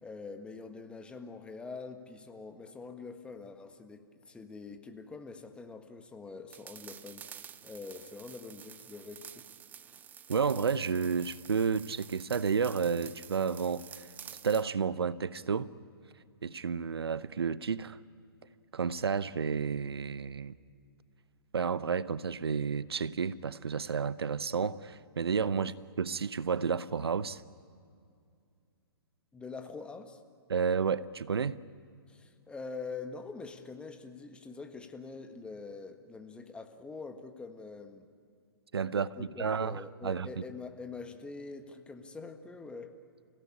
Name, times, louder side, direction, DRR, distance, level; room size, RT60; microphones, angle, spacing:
voice 1, 0.0-7.2 7.6-9.5 25.5-25.7 29.3-30.2 32.1-38.1 38.9-43.0, left 4 dB, 10° left, 1.5 m, -45 dB
sound 1, 6.5-14.7, right 8 dB, 15° right, 0.6 m, -50 dB
voice 2, 10.3-14.1 14.4-15.7 16.4-18.0 18.7-20.6 21.5-27.4 30.5-31.6 38.7-40.4, right 6 dB, 75° right, 0.7 m, -31 dB
29.5 x 17.0 x 9.9 m
figure-of-eight pair, 130°, 13 cm